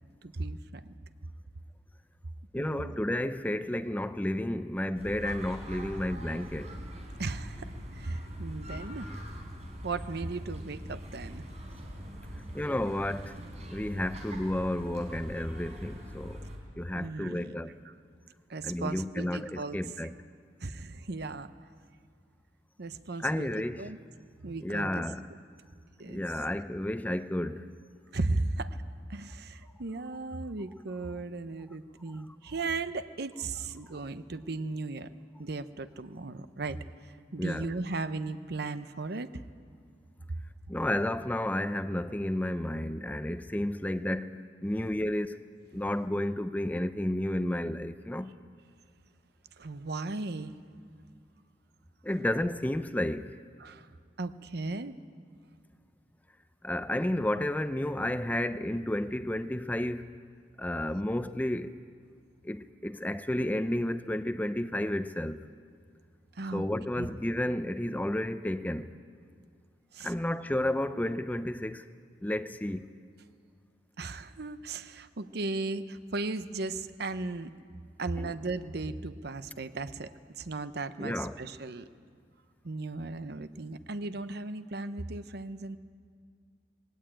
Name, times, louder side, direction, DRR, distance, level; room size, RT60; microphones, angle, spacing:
voice 1, 0.2-1.0 2.5-3.0 7.2-9.1 9.8-11.4 16.9-17.6 17.8-17.9 18.5-19.8 20.6-21.5 22.8-24.0 24.4-25.0 26.0-26.2 28.1-28.8 29.1-35.1 35.4-39.3 49.6-50.5 53.6-53.9 54.2-54.9 66.4-66.7 67.0-67.1 69.9-70.1 74.0-77.5 78.0-81.9 82.6-85.8, right 3 dB, 65° right, 0.8 m, -36 dB
voice 2, 2.5-6.7 12.5-13.4 13.7-16.4 16.8-17.7 18.6-20.1 23.2-23.8 24.6-25.3 26.1-27.7 37.4-37.7 40.7-45.4 45.7-48.3 52.0-53.3 56.6-60.1 60.6-61.8 62.4-65.5 66.5-68.9 70.0-71.9 72.2-72.9 78.2-78.3 81.0-81.4, left 1 dB, 10° left, 0.5 m, -31 dB
sound 1, 4.9-16.6, equal, 40° right, 4.1 m, -42 dB
20.5 x 17.5 x 9.0 m
head